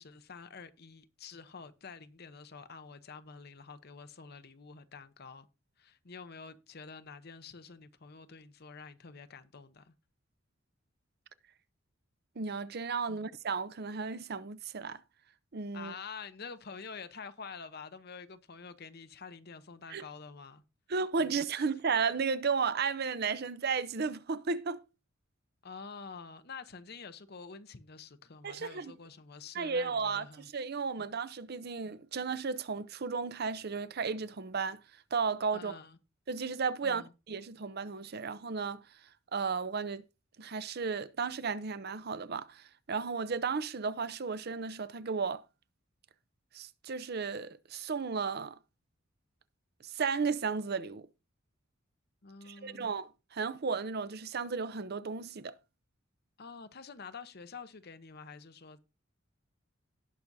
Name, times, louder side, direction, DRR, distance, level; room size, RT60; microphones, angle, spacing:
voice 1, 0.0-5.5 5.8-9.9 13.1-13.3 15.7-20.6 21.2-21.6 25.6-30.5 31.0-31.1 35.5-36.0 36.8-37.1 52.2-52.9 56.4-58.8, left 5 dB, 55° left, 0.9 m, -48 dB
voice 2, 12.4-15.0 15.5-15.9 19.9-20.1 20.9-24.8 28.4-28.9 29.5-30.3 30.5-34.8 35.1-35.7 36.3-38.8 39.3-40.0 40.4-45.4 46.5-48.6 49.8-51.1 52.5-55.6, right 5 dB, 50° right, 0.6 m, -34 dB
18.0 x 6.1 x 2.7 m
head